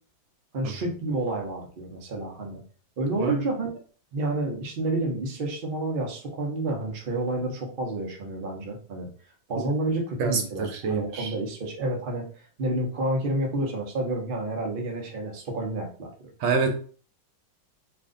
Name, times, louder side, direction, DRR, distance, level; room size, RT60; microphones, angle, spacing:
voice 1, 0.5-2.6 3.0-3.7 4.1-9.1 9.5-12.2 12.6-16.1, right 2 dB, 45° right, 0 dB, 0.6 m, -29 dB
voice 2, 10.2-11.3 16.4-16.8, right 4 dB, 80° right, 4 dB, 1.4 m, -26 dB
3.0 x 2.6 x 3.7 m, 0.43 s
omnidirectional pair, 2.0 m